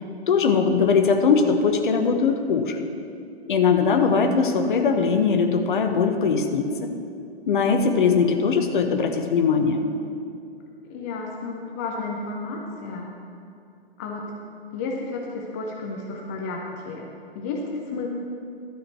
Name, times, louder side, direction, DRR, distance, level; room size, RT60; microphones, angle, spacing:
voice 1, 0.3-2.8 3.5-6.9 7.5-9.8, left 5 dB, 50° left, 6 dB, 1.1 m, -20 dB
voice 2, 10.9-13.1 14.0-14.4 14.7-17.1 17.3-18.1, left 3 dB, 15° left, 1 dB, 0.4 m, -32 dB
12.5 x 5.0 x 7.4 m, 2.5 s
figure-of-eight pair, 120°, 33 cm